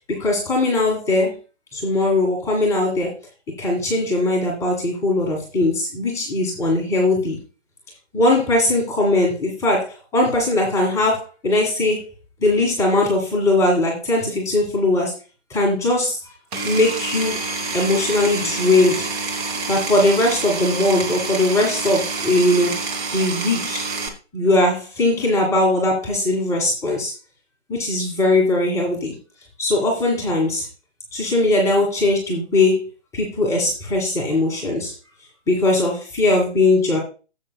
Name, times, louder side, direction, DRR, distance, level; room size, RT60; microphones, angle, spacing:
voice 1, 0.0-1.4 1.7-3.2 3.6-7.4 8.1-12.1 12.4-15.1 15.5-16.3 16.6-17.4 17.7-19.1 19.7-22.8 23.1-23.9 24.3-27.1 27.7-29.1 29.6-30.7 31.1-32.9 33.1-34.9 35.5-37.0, left 2 dB, 10° left, -3 dB, 1.9 m, -20 dB
Power tool, 16.5-24.1, right 3 dB, 15° right, 1.1 m, -27 dB
12.5 x 8.1 x 2.3 m, 0.33 s
figure-of-eight pair, 145°, 35 cm